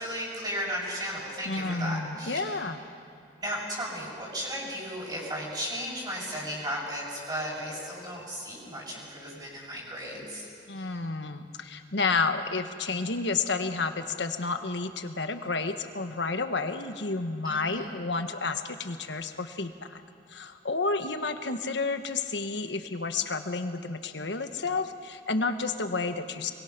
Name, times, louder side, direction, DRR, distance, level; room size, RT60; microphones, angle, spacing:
voice 1, 0.0-2.6 3.4-10.5 10.8-11.0 17.4-17.9, equal, 25° right, -5 dB, 6.9 m, -35 dB
voice 2, 1.4-2.8 10.7-20.0 20.3-26.5, left 3 dB, 75° left, 8 dB, 1.4 m, -31 dB
25.5 x 23.0 x 6.0 m, 2.5 s
head